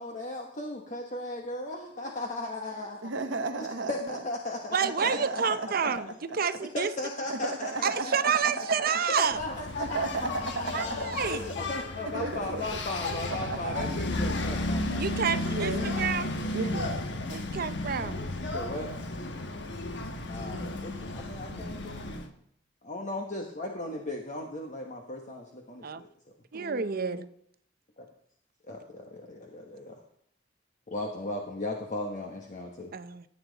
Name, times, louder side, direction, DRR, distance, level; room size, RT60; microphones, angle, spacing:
voice 1, 0.0-3.0 3.6-6.0 6.3-8.1 8.7-8.8 9.2-15.4 18.4-18.9 20.2-22.1 22.8-26.1 28.0-28.1 28.7-30.0 30.9-32.9, left 2 dB, 40° left, 1 dB, 1.2 m, -37 dB
voice 2, 3.0-4.2 5.0-5.8 6.3-6.4 7.3-8.3 8.6-8.9 9.8-11.2 12.0-12.8 13.3-13.9 15.5-16.0 16.5-17.0 21.5-21.7 26.5-27.3, right 3 dB, 85° right, 6 dB, 1.1 m, -34 dB
voice 3, 4.7-6.1 6.3-6.9 7.8-9.4 10.7-10.9 11.2-11.5 15.0-15.7 16.0-16.3 17.3-18.2 25.8-26.0 26.5-27.2 32.9-33.3, right 6 dB, 50° right, 12 dB, 0.7 m, -29 dB
Engine, 9.3-22.3, left 2 dB, 65° left, 1.2 m, -33 dB
15.0 x 8.6 x 4.0 m, 0.70 s
head